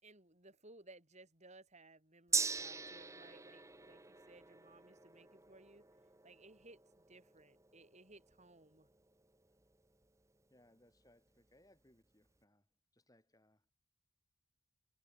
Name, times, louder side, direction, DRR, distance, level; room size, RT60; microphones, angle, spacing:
voice 1, 0.0-5.9 6.2-8.9, right 2 dB, 35° right, 7.1 m, -61 dB
Gong, 2.3-10.1 10.4-10.5, right 5 dB, 15° right, 1.3 m, -43 dB
voice 2, 10.5-12.7 12.9-13.7, left 1 dB, 15° left, 6.4 m, -69 dB
head